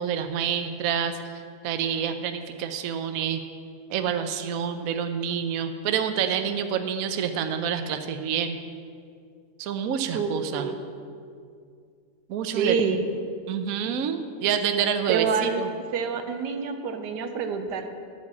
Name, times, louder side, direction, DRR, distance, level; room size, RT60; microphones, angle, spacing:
voice 1, 0.0-3.4 3.9-8.6 9.6-10.7 12.3-12.8 13.5-15.7, right 8 dB, 65° right, 8 dB, 1.0 m, -28 dB
voice 2, 10.1-10.8 12.5-13.0 15.1-15.6 15.9-17.9, right 6 dB, 80° right, 7 dB, 1.4 m, -27 dB
9.9 x 8.0 x 7.5 m, 2.3 s
omnidirectional pair, 1.8 m